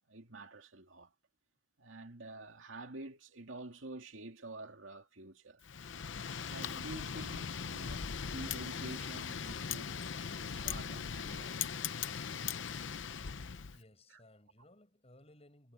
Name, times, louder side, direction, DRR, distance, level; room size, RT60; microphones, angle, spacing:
voice 1, 0.1-1.1 1.8-5.6 6.5-11.5 14.1-14.2, right 2 dB, 80° right, 2.3 m, -49 dB
Wind, 5.6-13.8, left 7 dB, 70° left, 0.7 m, -40 dB
voice 2, 13.4-15.7, left 1 dB, 30° left, 7.9 m, -61 dB
head